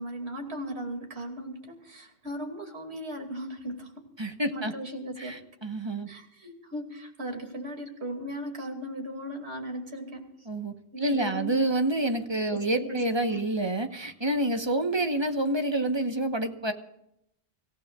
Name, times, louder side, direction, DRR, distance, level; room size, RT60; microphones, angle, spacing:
voice 1, 0.0-4.1 4.5-5.4 6.1-10.3 10.9-11.5 12.5-13.0 13.3-13.4, equal, 90° right, 3 dB, 2.9 m, -37 dB
voice 2, 4.2-4.7 5.2-6.1 10.5-16.7, right 1 dB, 25° right, 6 dB, 1.2 m, -28 dB
25.5 x 15.5 x 2.4 m, 0.78 s
omnidirectional pair, 1.1 m